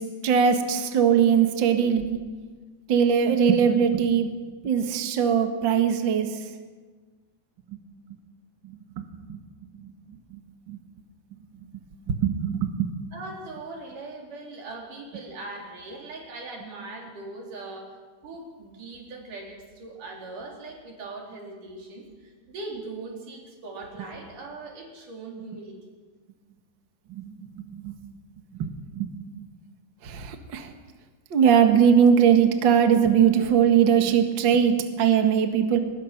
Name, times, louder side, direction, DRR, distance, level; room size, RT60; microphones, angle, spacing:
voice 1, 0.0-2.2 2.9-4.3 4.6-6.4 8.6-9.4 9.8-9.9 10.3-10.4 10.7-10.8 12.1-12.9 27.1-28.0 28.6-29.1 30.0-30.7 31.3-35.8, right 7 dB, 75° right, 6 dB, 1.1 m, -21 dB
voice 2, 13.1-17.9 18.2-25.8, right 2 dB, 50° right, 0 dB, 5.0 m, -40 dB
24.5 x 20.0 x 6.0 m, 1.4 s
omnidirectional pair, 4.8 m